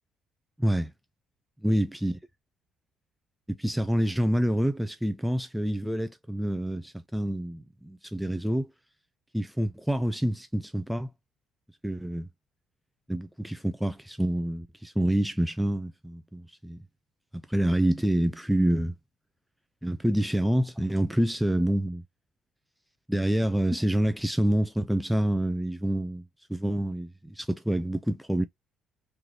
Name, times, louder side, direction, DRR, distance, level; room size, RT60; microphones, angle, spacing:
voice 1, 0.6-0.9 1.6-2.2 3.5-8.7 9.3-11.1 11.8-12.3 13.1-16.8 17.3-18.9 19.8-22.0 23.1-26.2 26.5-28.4, right 1 dB, 5° right, 0.4 m, -27 dB
3.7 x 3.2 x 3.1 m
cardioid pair, 105°, 0 cm